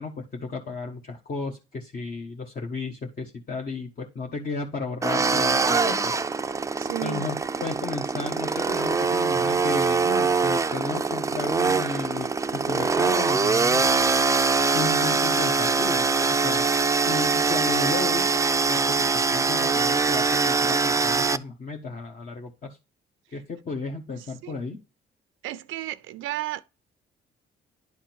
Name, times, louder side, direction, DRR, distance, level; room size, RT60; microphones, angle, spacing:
voice 1, 0.0-6.1 7.0-12.3 12.5-13.8 14.7-16.7 17.0-18.4 18.7-22.8 23.3-24.8, left 4 dB, 45° left, 1.3 m, -34 dB
sound 1, 5.0-21.4, right 4 dB, 15° right, 0.4 m, -23 dB
voice 2, 6.8-7.2 24.1-24.6 25.4-26.6, right 15 dB, 90° right, 0.4 m, -34 dB
10.5 x 3.7 x 4.5 m
cardioid pair, 90°, 20 cm